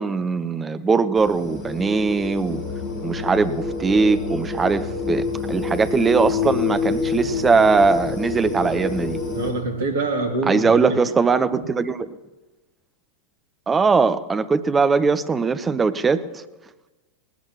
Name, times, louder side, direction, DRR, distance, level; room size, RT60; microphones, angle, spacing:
voice 1, 0.0-2.6 3.0-9.2 10.4-12.1 13.7-16.4, right 4 dB, 15° right, 12 dB, 0.8 m, -20 dB
sound 1, 1.2-9.5, left 4 dB, 35° left, 5.1 m, -27 dB
voice 2, 9.3-11.0 11.5-11.6, right 3 dB, 60° right, 4 dB, 2.6 m, -25 dB
20.0 x 18.5 x 2.9 m, 1.1 s
figure-of-eight pair, 90°, 0 cm